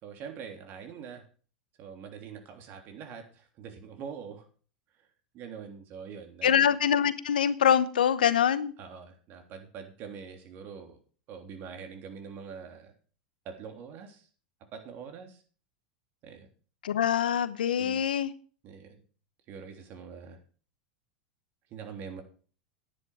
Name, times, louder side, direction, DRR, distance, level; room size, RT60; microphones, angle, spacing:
voice 1, 0.0-1.2 1.8-4.5 5.3-6.7 8.8-11.0 11.3-12.9 13.4-14.3 14.7-15.4 16.2-16.5 17.8-18.1 18.6-19.0 19.5-20.4 21.7-22.2, right 6 dB, 45° right, 4 dB, 3.3 m, -44 dB
voice 2, 6.4-8.7 16.8-18.3, left 9 dB, 80° left, 15 dB, 0.9 m, -24 dB
10.5 x 9.9 x 4.9 m, 0.41 s
hypercardioid pair, 95°, 5 cm